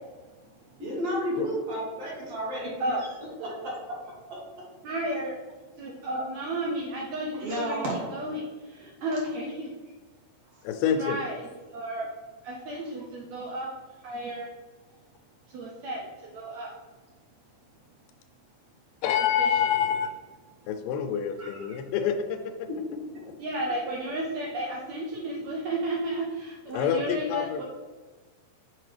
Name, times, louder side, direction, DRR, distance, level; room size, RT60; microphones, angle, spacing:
voice 1, 0.8-2.7 3.4-4.0 4.3-4.4 6.1-6.2 7.4-7.9 21.4-21.8 22.7-23.0, equal, 55° right, -4 dB, 2.1 m, -32 dB
voice 2, 4.8-5.4 5.8-7.8 8.1-9.7 10.9-12.1 12.4-13.7 14.0-14.5 15.5-16.7 19.4-19.5 23.4-27.6, right 1 dB, 80° right, -2 dB, 1.6 m, -33 dB
voice 3, 10.6-11.2 19.0-20.1 20.7-22.7 26.7-27.6, left 8 dB, 85° left, 7 dB, 2.2 m, -27 dB
6.4 x 4.5 x 3.3 m, 1.3 s
omnidirectional pair, 3.9 m